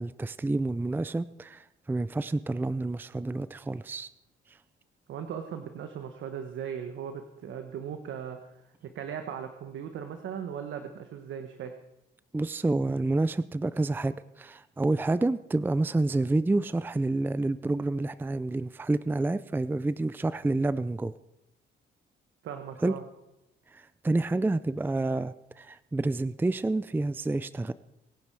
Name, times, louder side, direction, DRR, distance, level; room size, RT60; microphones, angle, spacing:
voice 1, 0.0-4.1 4.5-4.6 12.3-21.1 22.8-22.9 23.7-27.7, right 2 dB, 10° right, 16 dB, 0.4 m, -29 dB
voice 2, 5.1-11.7 22.4-23.0, right 8 dB, 75° right, 7 dB, 1.3 m, -38 dB
23.5 x 10.0 x 4.7 m, 0.91 s
cardioid pair, 90°, 20 cm